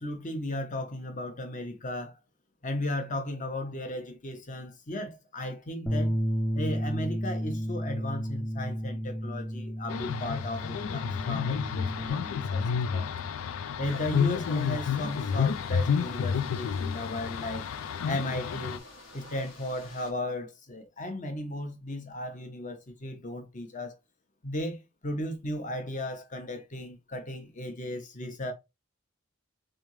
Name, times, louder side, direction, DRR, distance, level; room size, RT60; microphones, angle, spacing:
voice 1, 0.0-2.2 2.6-6.2 6.5-12.6 12.9-13.1 13.8-17.7 18.1-18.8 19.1-24.0 24.4-28.5, left 1 dB, 40° left, 1.0 m, -35 dB
Bass guitar, 5.9-12.1, equal, 10° left, 0.5 m, -32 dB
sound 1, 9.9-18.8, left 6 dB, 85° left, 0.4 m, -30 dB
sound 2, 13.8-20.1, left 2 dB, 70° left, 1.2 m, -49 dB
3.6 x 3.4 x 3.1 m
head